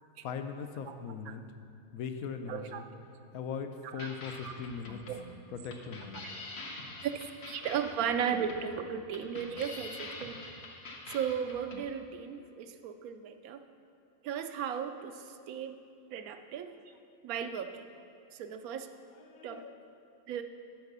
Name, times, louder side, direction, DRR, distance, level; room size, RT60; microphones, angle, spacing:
voice 1, 0.2-1.4 1.9-2.9 3.3-5.0 5.5-6.3 19.1-19.8, left 6 dB, 85° left, 7 dB, 1.1 m, -40 dB
voice 2, 2.5-2.8 3.8-4.1 4.4-4.5 5.1-5.2 6.1-6.3 7.0-10.5 11.1-13.6 14.2-15.8 16.1-16.8 17.2-17.9 18.3-18.9 19.4-19.6 20.3-20.4, right 8 dB, 90° right, 7 dB, 1.1 m, -36 dB
sound 1, 4.0-11.8, left 2 dB, 50° left, 1.1 m, -45 dB
10.5 x 4.8 x 6.7 m, 2.4 s
omnidirectional pair, 1.5 m